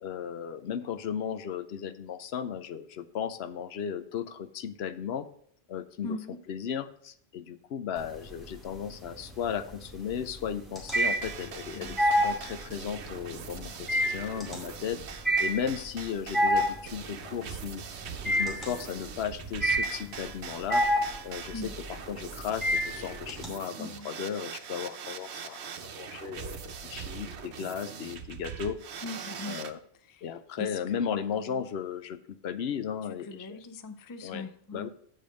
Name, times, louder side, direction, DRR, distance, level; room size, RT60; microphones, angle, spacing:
voice 1, 0.0-5.3 5.7-12.0 12.2-15.0 15.4-17.8 18.3-20.9 21.2-28.8 29.4-29.8 30.2-33.6 34.2-34.9, left 8 dB, 75° left, 0.9 m, -35 dB
voice 2, 6.0-6.4 11.8-12.1 21.5-21.7 23.8-24.1 29.0-29.6 30.6-31.4 33.3-34.9, left 2 dB, 30° left, 0.4 m, -40 dB
sound 1, 8.0-8.6 9.0-23.5, equal, ahead, 2.2 m, -28 dB
sound 2, 10.9-29.7, right 7 dB, 90° right, 1.0 m, -42 dB
7.6 x 5.2 x 6.3 m
omnidirectional pair, 1.1 m